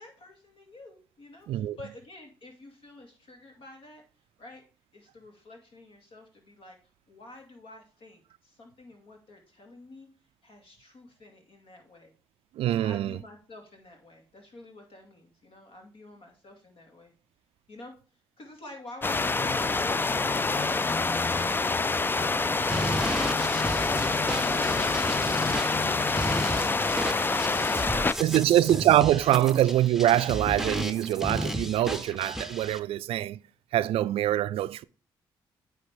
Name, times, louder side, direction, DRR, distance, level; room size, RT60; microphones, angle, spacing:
voice 1, 0.0-4.0 4.4-4.6 4.9-6.8 7.1-10.1 10.4-12.1 12.8-17.1 17.7-17.9 18.4-23.3, left 2 dB, 60° left, 2.4 m, -49 dB
voice 2, 1.5-1.8 12.6-13.2 28.2-33.4 33.7-34.8, right 13 dB, 70° right, 0.3 m, -24 dB
sound 1, 19.0-28.1, left 3 dB, 20° left, 0.4 m, -26 dB
sound 2, 22.7-32.8, right 1 dB, 5° right, 0.8 m, -34 dB
9.4 x 3.4 x 5.0 m
supercardioid pair, 55°, 10 cm